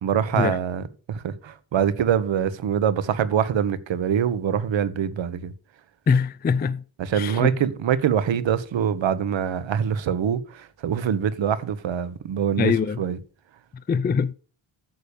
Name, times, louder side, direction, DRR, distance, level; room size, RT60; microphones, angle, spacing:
voice 1, 0.0-5.5 7.0-13.2, right 8 dB, 70° right, 1.2 m, -24 dB
voice 2, 6.1-6.8 7.1-7.5 12.6-13.0 13.9-14.3, left 6 dB, 20° left, 0.4 m, -22 dB
9.4 x 6.9 x 6.8 m
wide cardioid pair, 140°, 48 cm